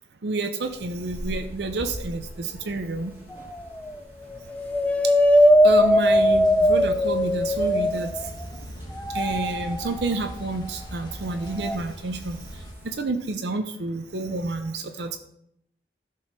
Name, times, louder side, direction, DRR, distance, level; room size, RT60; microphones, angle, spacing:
voice 1, 0.2-3.1 5.0-5.1 5.6-8.3 9.1-15.2, right 3 dB, 75° right, 7 dB, 0.7 m, -29 dB
sound 1, 0.6-13.0, equal, 10° right, 3.1 m, -44 dB
sound 2, 3.3-3.9 4.3-8.5 9.0-10.3 11.6-11.8, equal, 10° left, 0.4 m, -20 dB
sound 3, 6.1-12.7, equal, 25° left, 1.7 m, -40 dB
12.0 x 4.7 x 6.0 m, 0.76 s
head